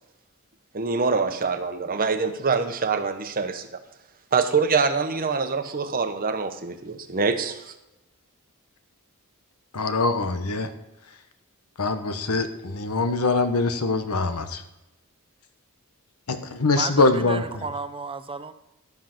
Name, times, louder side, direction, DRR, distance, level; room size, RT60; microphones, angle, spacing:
voice 1, 0.7-3.8 4.3-7.7, right 4 dB, 40° right, 8 dB, 1.0 m, -25 dB
voice 2, 9.7-10.7 11.8-14.6 16.3-17.6, left 3 dB, 85° left, 9 dB, 1.1 m, -23 dB
voice 3, 16.7-18.5, right 4 dB, 25° right, 11 dB, 0.6 m, -32 dB
12.0 x 7.5 x 6.0 m, 0.93 s
head